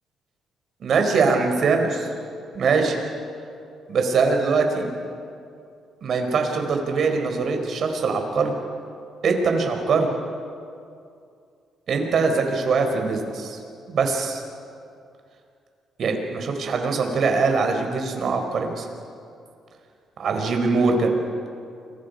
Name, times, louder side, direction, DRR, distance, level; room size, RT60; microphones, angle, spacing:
voice 1, 0.8-2.1 2.5-3.0 3.9-4.9 6.0-8.5 9.2-10.1 11.9-13.6 13.9-14.4 16.0-18.9 20.2-21.1, right 4 dB, 60° right, 4 dB, 4.2 m, -22 dB
29.5 x 23.5 x 5.3 m, 2.4 s
cardioid pair, 90°, 0 cm